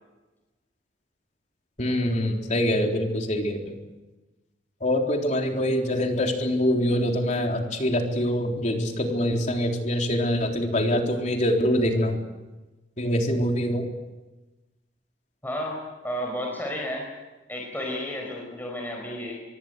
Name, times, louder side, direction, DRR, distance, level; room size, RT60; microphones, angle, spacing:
voice 1, 1.8-3.7 4.8-12.2 13.0-13.9, equal, 40° left, 2 dB, 3.9 m, -24 dB
voice 2, 15.4-17.0 17.5-19.4, left 1 dB, 10° left, 0 dB, 4.9 m, -32 dB
25.0 x 23.0 x 8.1 m, 1.1 s
head